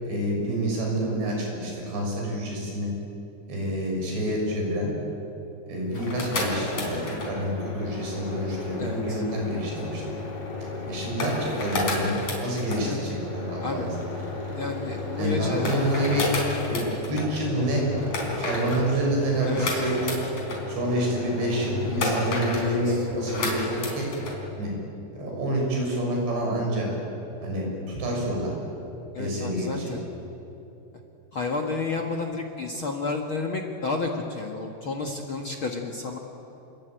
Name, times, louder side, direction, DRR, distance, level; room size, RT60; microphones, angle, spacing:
voice 1, 0.0-2.9 3.5-4.9 5.6-10.0 10.9-13.9 15.2-16.3 16.7-16.8 17.1-17.9 18.4-20.2 20.7-24.1 24.6-24.7 25.1-26.9 27.4-28.5 29.2-29.9, right 1 dB, 80° right, 0 dB, 8.5 m, -28 dB
sound 1, 5.8-24.4, left 2 dB, 40° left, 5.1 m, -31 dB
voice 2, 8.8-9.2 12.8-13.0 13.6-13.9 14.5-15.7 19.4-19.8 22.5-23.1 29.1-30.0 31.3-36.2, left 3 dB, 60° left, 4 dB, 1.3 m, -31 dB
28.5 x 23.0 x 9.2 m, 3.0 s
omnidirectional pair, 4.9 m